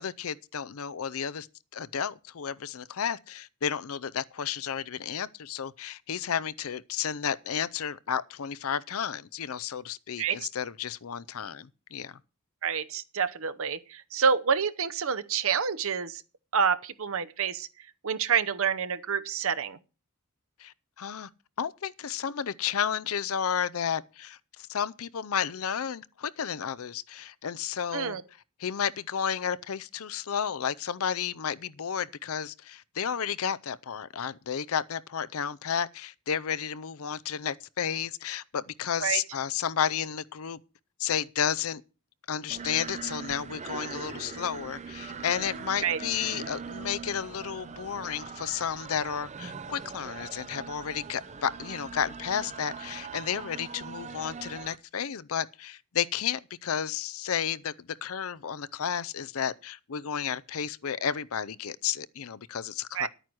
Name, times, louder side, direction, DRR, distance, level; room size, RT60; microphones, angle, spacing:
voice 1, 0.0-1.5 1.7-12.1 20.6-21.3 21.6-28.2 28.6-40.6 41.0-41.8 42.3-63.1, left 8 dB, 65° left, 0.5 m, -32 dB
voice 2, 12.6-16.2 16.5-17.7 18.0-19.8 27.9-28.2 39.0-39.2 45.8-46.0 62.9-63.1, right 6 dB, 65° right, 0.8 m, -28 dB
sound 1, 42.5-54.8, right 5 dB, 30° right, 0.6 m, -41 dB
11.0 x 9.1 x 6.1 m
head